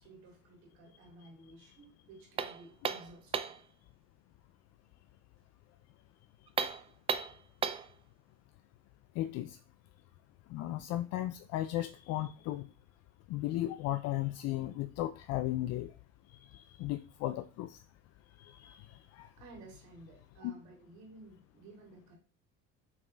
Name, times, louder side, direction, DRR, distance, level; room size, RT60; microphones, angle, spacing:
voice 1, 0.0-3.5 19.4-22.2, right 2 dB, 75° right, 2.8 m, -54 dB
sound 1, 2.4-3.7 6.5-7.9, right 6 dB, 20° right, 0.3 m, -35 dB
voice 2, 9.2-9.6 10.5-12.7 13.3-15.9 16.4-17.8 18.4-18.9 19.1-19.3 20.4-20.5, left 14 dB, 60° left, 0.4 m, -35 dB
5.9 x 4.3 x 3.9 m
cardioid pair, 135°, 29 cm